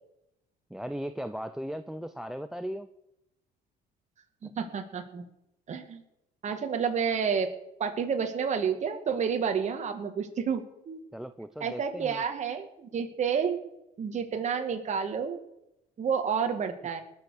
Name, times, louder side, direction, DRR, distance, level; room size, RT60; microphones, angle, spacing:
voice 1, 0.7-2.9 4.4-4.5 11.1-12.2, equal, 5° right, 12 dB, 0.6 m, -37 dB
voice 2, 4.4-5.2 5.7-6.0 6.4-7.5 7.8-11.0 11.6-13.6 14.0-15.4 16.0-17.0, right 6 dB, 45° right, 5 dB, 2.4 m, -30 dB
20.0 x 7.2 x 6.7 m, 0.84 s
cardioid pair, 110°, 17 cm